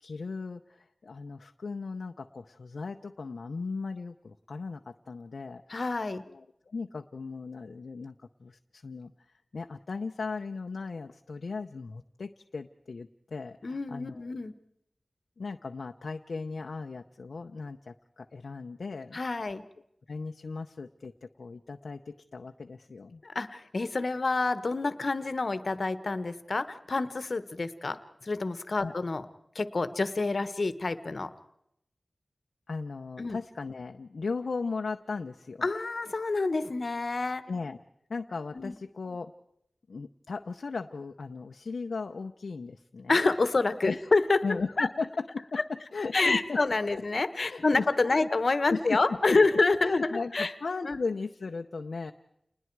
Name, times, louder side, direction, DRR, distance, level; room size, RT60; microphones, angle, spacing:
voice 1, 0.0-5.8 6.3-8.1 8.4-9.1 9.5-14.2 15.4-19.2 20.1-23.2 28.8-28.9 32.7-35.7 37.5-37.8 38.1-39.3 39.9-43.2 43.8-44.1 44.4-46.6 46.9-47.0 47.5-48.3 48.7-49.4 49.8-52.1, left 4 dB, 85° left, 5 dB, 0.7 m, -37 dB
voice 2, 5.7-6.2 13.6-14.5 19.1-19.6 23.2-29.2 29.5-31.3 33.2-33.4 35.6-37.5 38.5-38.7 43.1-44.9 46.1-50.5 50.8-51.0, left 3 dB, 65° left, 13 dB, 1.2 m, -28 dB
29.0 x 20.5 x 4.7 m, 0.76 s
wide cardioid pair, 60°, 0 cm